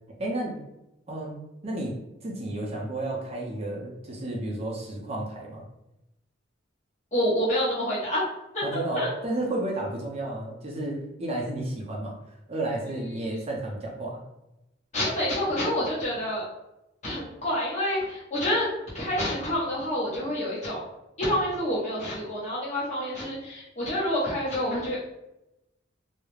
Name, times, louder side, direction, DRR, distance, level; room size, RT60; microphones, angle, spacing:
voice 1, 0.2-0.6 1.1-5.7 8.6-12.1 12.5-14.2, right 1 dB, 35° right, -2 dB, 0.4 m, -32 dB
voice 2, 7.1-8.2 8.5-9.1 14.9-16.4 17.0-18.7 18.9-20.8 21.2-25.0, equal, 40° left, -7 dB, 0.9 m, -28 dB
2.3 x 2.0 x 3.0 m, 0.91 s
head